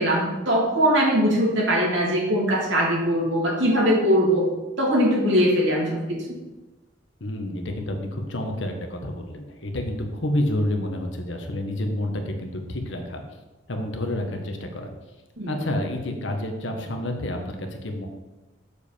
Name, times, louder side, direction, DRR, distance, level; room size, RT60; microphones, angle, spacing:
voice 1, 0.0-4.4 4.8-6.4 15.4-15.6, equal, 70° right, -4 dB, 2.8 m, -21 dB
voice 2, 7.2-13.2 13.7-14.9 15.5-18.1, left 1 dB, 75° left, 3 dB, 1.3 m, -29 dB
6.6 x 5.2 x 6.9 m, 1.1 s
head